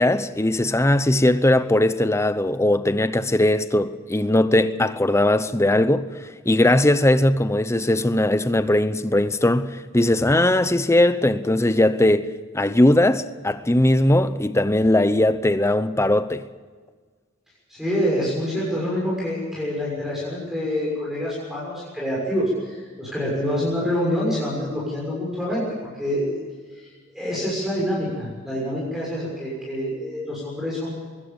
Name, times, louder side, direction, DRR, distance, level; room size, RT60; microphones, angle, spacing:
voice 1, 0.0-6.1 6.5-12.3 12.5-16.4, left 1 dB, 15° left, 0.8 m, -19 dB
voice 2, 17.7-25.6 25.9-26.4 27.1-30.9, equal, ahead, 6.5 m, -26 dB
22.5 x 17.0 x 7.1 m
head